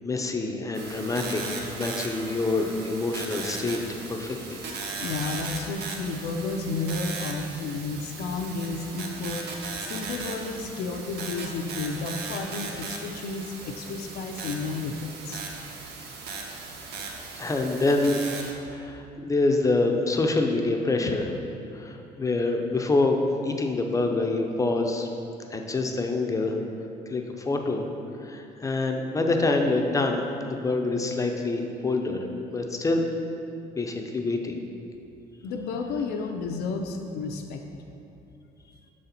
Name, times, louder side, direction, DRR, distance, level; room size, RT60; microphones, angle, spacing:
voice 1, 0.0-1.4 1.8-4.6 17.4-18.4 18.7-21.4 21.7-23.2 23.4-25.1 25.5-26.6 27.1-27.9 28.2-32.3 32.5-33.0 33.8-34.6, left 2 dB, 20° left, 3 dB, 0.5 m, -26 dB
sound 1, 0.7-18.5, right 4 dB, 75° right, 0.7 m, -37 dB
voice 2, 5.0-9.5 9.8-15.4 35.4-37.6, left 3 dB, 75° left, 3 dB, 0.5 m, -32 dB
6.3 x 4.3 x 4.0 m, 2.8 s
cardioid pair, 110°, 17 cm